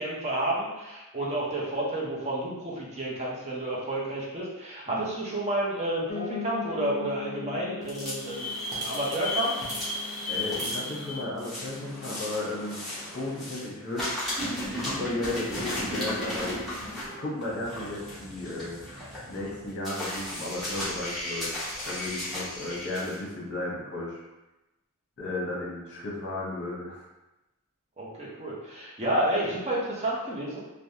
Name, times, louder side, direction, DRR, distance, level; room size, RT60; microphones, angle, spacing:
voice 1, 0.0-9.6 28.0-30.6, right 1 dB, 30° right, -5 dB, 0.7 m, -30 dB
Piano, 6.1-15.2 15.6-16.8 17.0-17.1 17.4-17.5 17.7-17.8 18.3-18.4, left 5 dB, 35° left, 0.3 m, -42 dB
sound 1, 7.8-13.7 13.9-23.2, left 1 dB, ahead, 0.8 m, -34 dB
voice 2, 9.9-12.8 13.1-14.1 14.7-16.8 17.2-18.8 19.3-21.5 21.8-24.2 25.2-27.0, left 2 dB, 50° left, -3 dB, 0.8 m, -34 dB
3.2 x 2.1 x 2.7 m, 1.0 s
head